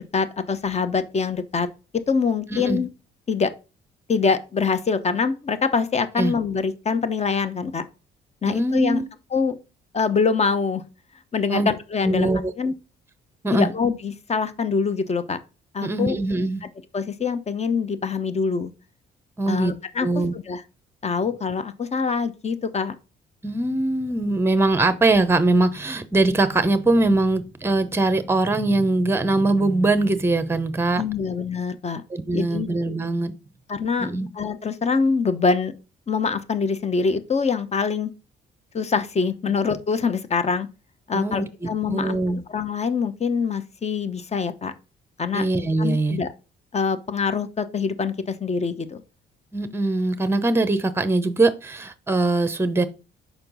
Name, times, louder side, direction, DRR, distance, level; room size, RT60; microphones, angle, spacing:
voice 1, 0.0-1.7 2.1-2.9 3.3-3.5 4.1-7.8 8.4-9.0 9.3-9.6 9.9-10.8 11.3-12.3 12.6-12.7 13.5-15.4 15.7-16.2 16.9-18.7 19.5-20.1 20.3-20.6 21.0-22.9 31.0-32.0 32.3-32.7 33.7-34.1 34.4-35.7 36.1-38.1 38.7-40.7 41.1-42.2 42.5-44.7 45.2-45.5 45.8-46.3 46.7-49.0, left 5 dB, 35° left, 0.8 m, -24 dB
voice 2, 2.5-2.8 6.2-6.4 8.5-9.1 11.5-11.7 12.0-12.5 13.4-13.7 15.8-16.6 19.4-19.7 20.0-20.3 23.4-31.0 32.1-33.3 34.0-34.3 41.1-42.4 45.3-46.2 49.5-52.9, right 2 dB, 10° right, 0.7 m, -22 dB
5.7 x 4.4 x 3.9 m
cardioid pair, 90°, 20 cm